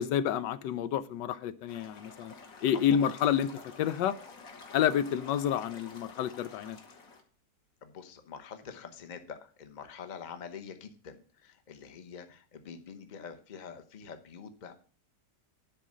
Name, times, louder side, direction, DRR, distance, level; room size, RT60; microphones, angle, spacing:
voice 1, 0.0-2.3 2.6-3.5 3.8-4.2 4.7-6.8, left 9 dB, 85° left, 1.3 m, -29 dB
sound 1, 1.7-7.2, left 4 dB, 55° left, 1.8 m, -50 dB
voice 2, 2.7-3.1 7.8-14.7, left 6 dB, 35° left, 0.8 m, -46 dB
10.5 x 4.4 x 7.4 m
omnidirectional pair, 1.9 m